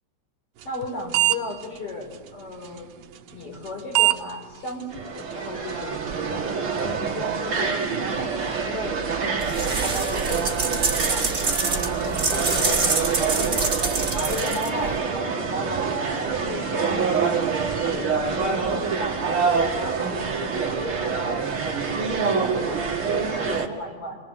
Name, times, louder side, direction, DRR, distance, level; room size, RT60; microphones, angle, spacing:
voice 1, 0.6-2.9 3.3-11.3 11.7-12.8 13.2-13.8 14.1-17.0 17.7-24.2, left 2 dB, 30° left, 1 dB, 6.0 m, -35 dB
sound 1, 0.6-0.9 1.1-1.4 1.6-1.7 2.6-2.8 3.7-3.8 3.9-4.2 4.7-4.8 5.2-5.3 5.7-5.8, right 16 dB, 80° right, 1.9 m, -19 dB
sound 2, 4.9-23.7, right 5 dB, 40° right, 2.1 m, -26 dB
sound 3, 9.4-15.0, right 4 dB, 20° right, 3.5 m, -26 dB
28.0 x 23.5 x 8.2 m, 1.4 s
omnidirectional pair, 5.5 m